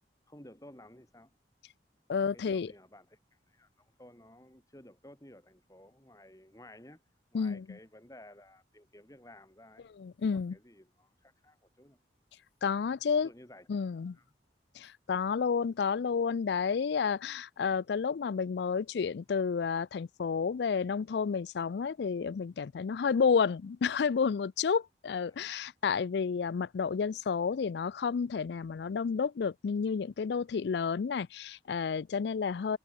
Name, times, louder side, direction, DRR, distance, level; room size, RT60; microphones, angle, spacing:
voice 1, 0.3-1.3 2.2-7.0 7.3-9.9 10.3-12.0 13.1-13.7 14.1-14.3 25.2-25.5, left 1 dB, 20° left, 3.7 m, -55 dB
voice 2, 2.1-2.7 7.3-7.7 10.0-10.6 12.6-13.3 13.7-14.2 14.8-32.8, left 6 dB, 70° left, 0.4 m, -30 dB
head